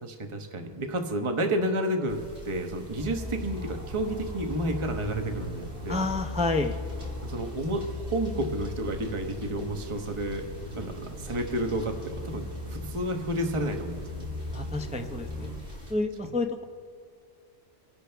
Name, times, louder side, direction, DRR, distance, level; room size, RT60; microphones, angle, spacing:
voice 1, 0.0-6.0 7.2-10.5 10.7-14.3, right 1 dB, 25° right, 4 dB, 1.1 m, -31 dB
sound 1, 2.1-15.9, left 1 dB, 75° right, 3.5 m, -45 dB
sound 2, 3.0-15.6, left 1 dB, 55° right, 5.2 m, -38 dB
voice 2, 5.9-6.8 14.5-15.5 15.9-16.6, left 2 dB, 10° right, 5 dB, 0.5 m, -29 dB
30.0 x 11.0 x 3.4 m, 2.3 s
omnidirectional pair, 1.2 m